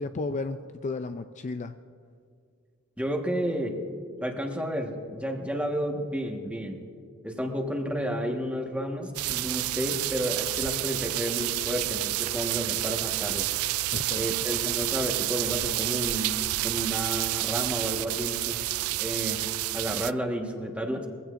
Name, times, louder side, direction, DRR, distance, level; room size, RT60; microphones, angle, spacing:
voice 1, 0.0-1.8 13.9-14.5, left 3 dB, 35° left, 9 dB, 0.4 m, -34 dB
voice 2, 3.0-3.7 4.2-6.8 7.2-13.5 14.1-16.4 16.6-18.6 19.0-19.4 19.7-21.1, equal, 5° right, 1 dB, 1.4 m, -31 dB
sound 1, 9.1-20.1, right 17 dB, 80° right, 0.3 m, -29 dB
22.0 x 16.0 x 2.5 m, 2.3 s
head